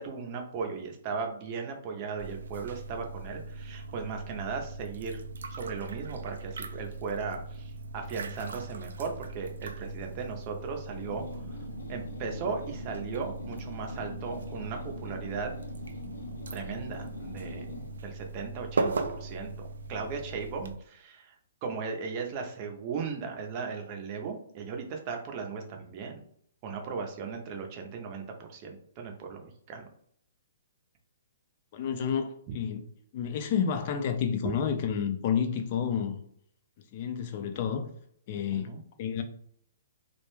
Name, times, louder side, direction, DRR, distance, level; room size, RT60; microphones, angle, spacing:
voice 1, 0.0-5.2 5.5-11.6 11.9-15.5 16.5-17.7 18.0-18.9 19.2-19.5 19.9-21.3 21.6-26.2 26.6-29.8 38.5-38.8, right 5 dB, 30° right, 0.5 m, -37 dB
sound 1, 2.2-20.8, right 3 dB, 80° right, 0.3 m, -39 dB
sound 2, 11.0-18.0, left 2 dB, 85° left, 0.6 m, -44 dB
voice 2, 31.7-32.8 33.1-36.2 36.9-37.9 38.3-38.7 39.0-39.2, left 7 dB, 40° left, 0.4 m, -30 dB
2.3 x 2.1 x 3.0 m
hypercardioid pair, 155°, 0 cm